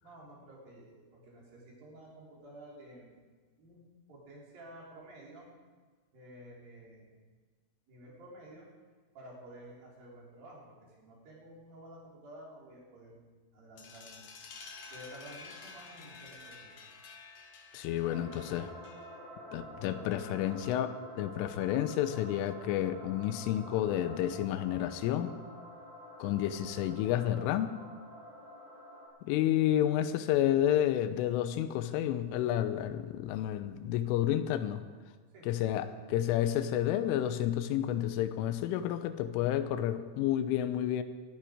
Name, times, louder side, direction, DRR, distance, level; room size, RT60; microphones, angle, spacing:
voice 1, 0.0-3.1 3.6-3.8 4.1-5.5 6.1-7.2 7.9-8.7 9.1-14.3 14.9-16.9 35.3-35.7, right 1 dB, 50° right, -4 dB, 5.2 m, -52 dB
sound 1, 13.8-19.3, left 4 dB, 55° left, 2.3 m, -51 dB
voice 2, 17.7-18.7 19.5-25.4 26.2-27.8 29.2-34.8 35.4-41.0, left 11 dB, 85° left, 10 dB, 3.2 m, -30 dB
sound 2, 18.0-29.1, equal, 30° right, 6.2 m, -49 dB
20.5 x 12.0 x 5.0 m, 1.4 s
omnidirectional pair, 5.8 m